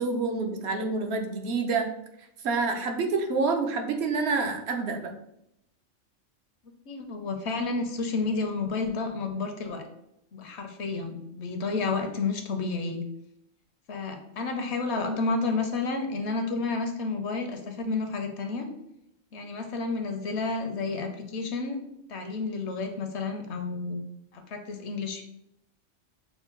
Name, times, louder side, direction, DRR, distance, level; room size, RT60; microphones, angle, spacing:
voice 1, 0.0-1.9 2.4-5.1, right 4 dB, 60° right, 4 dB, 0.9 m, -27 dB
voice 2, 6.9-9.9 10.3-13.0 13.9-18.7 19.3-21.8 22.1-24.0 24.3-25.2, left 3 dB, 65° left, 5 dB, 0.9 m, -31 dB
6.1 x 2.2 x 3.7 m, 0.81 s
omnidirectional pair, 1.3 m